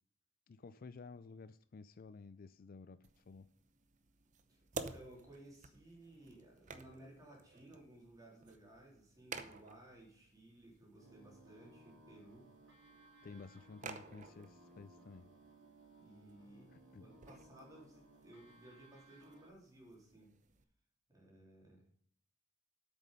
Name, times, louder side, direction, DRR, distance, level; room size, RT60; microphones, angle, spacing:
voice 1, 0.5-3.5 13.2-15.3 16.7-17.1, left 4 dB, 45° left, 0.4 m, -53 dB
sound 1, 3.0-20.6, right 4 dB, 35° right, 0.8 m, -54 dB
voice 2, 4.5-12.4 13.2-13.4 16.0-20.3 21.1-21.9, right 1 dB, 15° right, 3.5 m, -58 dB
sound 2, 11.0-19.5, right 2 dB, 65° right, 4.2 m, -62 dB
8.3 x 6.9 x 5.3 m
head